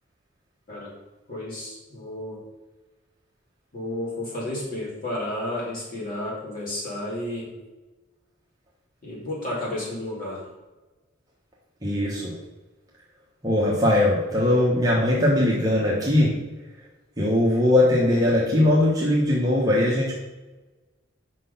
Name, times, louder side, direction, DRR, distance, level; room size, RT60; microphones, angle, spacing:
voice 1, 1.3-2.4 3.7-7.5 9.0-10.5, left 1 dB, 45° left, -5 dB, 2.8 m, -32 dB
voice 2, 11.8-12.4 13.4-16.3 17.2-20.2, left 1 dB, 20° right, -5 dB, 1.0 m, -20 dB
6.0 x 5.5 x 5.6 m, 1.2 s
head